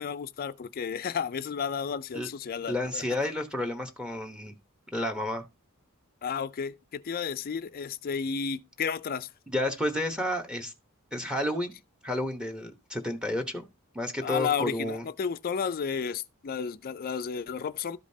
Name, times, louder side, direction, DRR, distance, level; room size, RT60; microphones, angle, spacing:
voice 1, 0.0-3.0 6.2-9.3 14.2-18.0, left 6 dB, 45° left, 0.4 m, -32 dB
voice 2, 2.7-4.5 4.9-5.4 9.5-10.7 11.1-11.7 12.0-13.7 13.9-15.1, left 1 dB, 5° right, 1.0 m, -31 dB
13.0 x 5.1 x 2.7 m
head